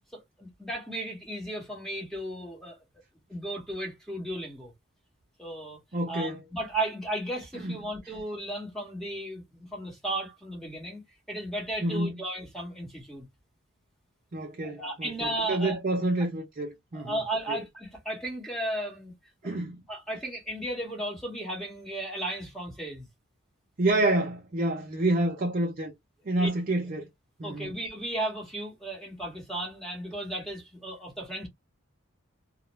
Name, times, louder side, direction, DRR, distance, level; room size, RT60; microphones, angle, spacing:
voice 1, 0.1-2.8 3.3-4.7 5.4-5.8 6.1-11.0 11.3-13.2 14.6-15.8 16.9-19.1 19.4-19.6 19.9-23.0 26.3-26.5 27.4-31.5, right 1 dB, ahead, 0.9 m, -35 dB
voice 2, 5.9-6.4 7.6-7.8 11.8-12.1 14.3-17.2 17.5-17.6 19.4-19.8 23.8-25.9 26.3-27.1 27.4-27.7, right 2 dB, 40° right, 0.5 m, -28 dB
2.4 x 2.0 x 2.9 m
head